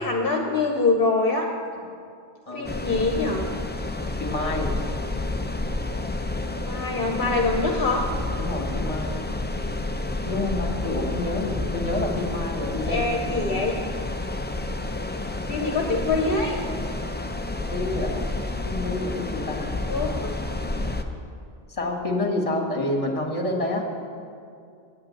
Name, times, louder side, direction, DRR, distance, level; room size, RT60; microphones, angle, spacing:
voice 1, 0.0-1.5 2.5-3.4 6.6-8.1 12.8-13.8 15.5-16.6 19.9-20.3, left 3 dB, 60° left, 1 dB, 1.2 m, -24 dB
sound 1, 2.6-21.0, left 2 dB, 15° left, 0.5 m, -30 dB
voice 2, 4.2-4.7 8.4-9.2 10.3-13.5 17.6-18.1 18.6-19.8 21.7-23.9, left 2 dB, 30° left, 1 dB, 1.8 m, -28 dB
9.5 x 9.0 x 8.4 m, 2.4 s
omnidirectional pair, 1.1 m